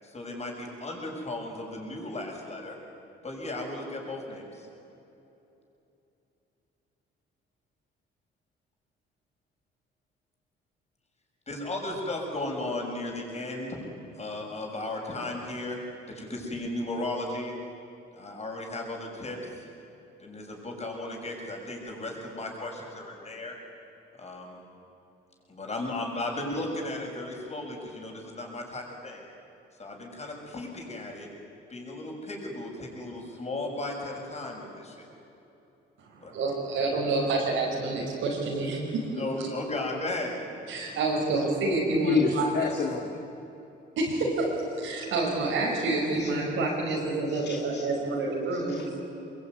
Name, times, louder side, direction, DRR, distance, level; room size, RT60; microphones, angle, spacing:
voice 1, 0.0-2.8 3.2-4.7 11.5-13.8 14.1-15.8 16.1-17.5 18.1-19.7 20.2-23.6 24.2-24.6 25.5-29.3 29.8-31.3 31.7-35.1 36.2-36.3 39.2-40.4, left 2 dB, 35° left, 0 dB, 7.4 m, -35 dB
voice 2, 36.1-39.0 40.7-42.7 44.0-44.5 44.8-48.9, right 2 dB, 85° right, -4 dB, 5.9 m, -28 dB
voice 3, 42.0-43.2 46.2-46.3 47.3-47.9 48.7-49.0, left 5 dB, 60° left, 1 dB, 2.2 m, -30 dB
24.0 x 22.0 x 9.8 m, 2.9 s
cardioid pair, 90°, 20 cm